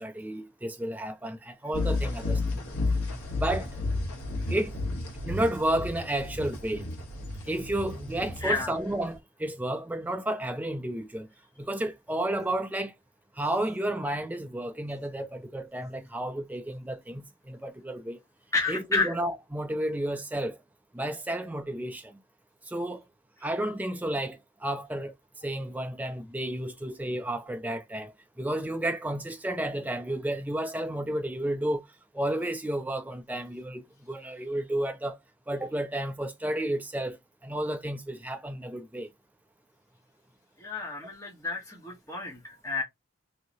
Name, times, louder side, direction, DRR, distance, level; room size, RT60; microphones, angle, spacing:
voice 1, 0.0-2.7 3.3-3.7 4.5-4.7 5.3-6.9 7.5-11.3 11.6-12.9 13.4-18.2 18.7-20.6 20.9-22.2 22.7-23.0 23.4-25.1 25.4-31.8 32.1-35.2 35.5-37.2 37.4-39.1, right 1 dB, 5° right, 0.3 m, -32 dB
sound 1, 1.7-9.1, left 2 dB, 80° left, 1.2 m, -32 dB
voice 2, 8.4-8.7 18.5-19.1 40.6-42.8, left 3 dB, 15° left, 1.1 m, -30 dB
3.7 x 3.0 x 2.6 m
head